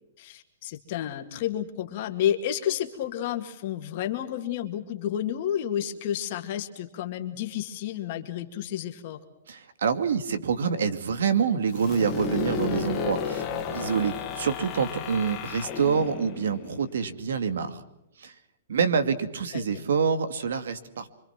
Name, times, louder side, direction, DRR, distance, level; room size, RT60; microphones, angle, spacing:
voice 1, 0.2-9.2 19.5-19.8, left 10 dB, 35° left, 5 dB, 2.2 m, -31 dB
voice 2, 9.5-17.8 18.2-18.3 18.7-21.1, right 6 dB, 75° right, 11 dB, 2.5 m, -26 dB
sound 1, 11.7-17.4, left 6 dB, 15° left, 2.2 m, -33 dB
26.0 x 25.0 x 6.1 m, 0.85 s
hypercardioid pair, 180°, 0 cm